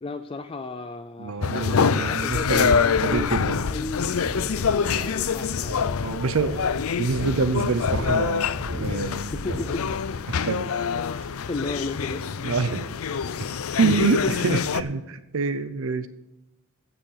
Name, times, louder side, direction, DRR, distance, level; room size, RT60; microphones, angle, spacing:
voice 1, 0.0-3.4 3.7-5.8 9.3-9.8 11.5-12.3 14.2-14.3, left 3 dB, 25° left, 9 dB, 0.4 m, -34 dB
voice 2, 1.2-3.6 6.0-6.6 7.0-8.5 8.8-9.3 10.3-10.7 12.4-12.9 13.8-16.1, right 4 dB, 65° right, 12 dB, 0.6 m, -26 dB
sound 1, 1.4-14.8, left 6 dB, 80° left, 0.5 m, -26 dB
sound 2, 2.3-10.0, equal, 85° right, 4.7 m, -36 dB
15.5 x 7.0 x 5.7 m, 0.91 s
head